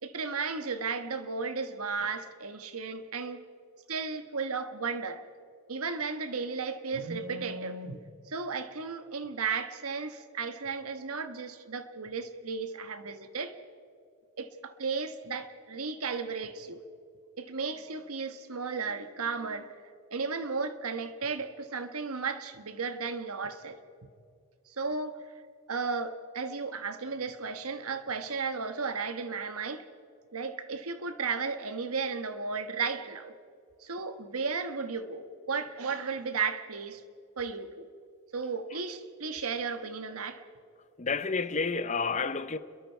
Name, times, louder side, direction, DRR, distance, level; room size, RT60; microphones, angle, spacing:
voice 1, 0.0-3.4 3.9-5.2 5.7-8.0 8.3-13.5 14.4-16.8 17.4-19.7 20.1-23.8 24.8-25.2 25.7-29.8 30.3-33.3 33.8-37.0 37.4-37.9 38.3-40.4, right 5 dB, 85° right, 1.4 m, -34 dB
voice 2, 41.0-42.6, left 4 dB, 35° left, 0.7 m, -30 dB
29.5 x 22.0 x 4.6 m
head